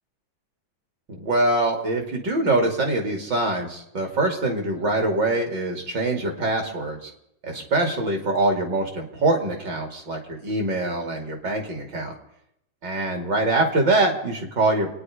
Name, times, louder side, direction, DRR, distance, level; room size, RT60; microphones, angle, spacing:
voice 1, 1.1-7.1 7.4-12.1 12.8-15.0, right 2 dB, 75° right, 2 dB, 3.4 m, -24 dB
28.5 x 9.8 x 5.0 m, 0.79 s
omnidirectional pair, 1.9 m